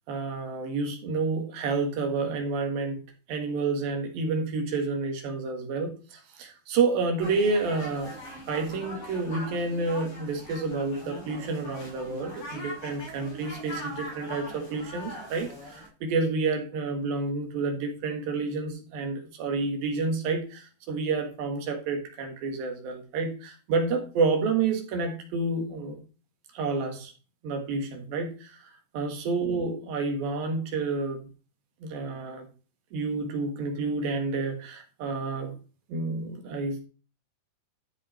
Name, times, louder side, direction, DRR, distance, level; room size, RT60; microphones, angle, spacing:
voice 1, 0.1-8.1 8.5-26.0 26.5-27.1 27.4-28.6 28.9-31.3 31.8-32.5 32.9-35.6 35.9-36.8, right 4 dB, 85° right, 4 dB, 3.5 m, -29 dB
sound 1, 7.2-15.9, equal, 55° left, 6.7 m, -41 dB
12.5 x 5.4 x 4.4 m, 0.35 s
omnidirectional pair, 4.0 m